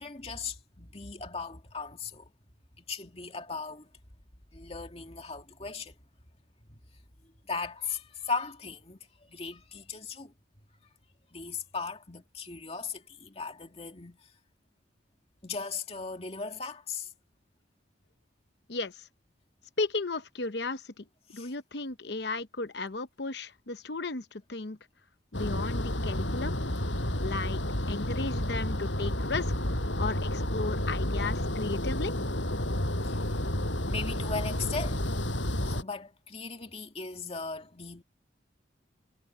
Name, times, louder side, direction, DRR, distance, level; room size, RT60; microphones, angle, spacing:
voice 1, 0.0-2.2 2.8-3.9 4.5-5.9 6.7-6.8 7.5-10.3 11.3-14.2 15.4-17.1 21.3-21.5 33.0-33.2 33.9-35.1 35.6-38.0, left 4 dB, 30° left, 2.4 m, -38 dB
voice 2, 19.8-21.0 21.3-24.8 25.3-26.6 27.2-27.6 27.9-29.5 30.0-32.3, left 3 dB, 60° left, 0.9 m, -35 dB
sound 1, 25.3-35.8, left 1 dB, 75° left, 6.9 m, -30 dB
head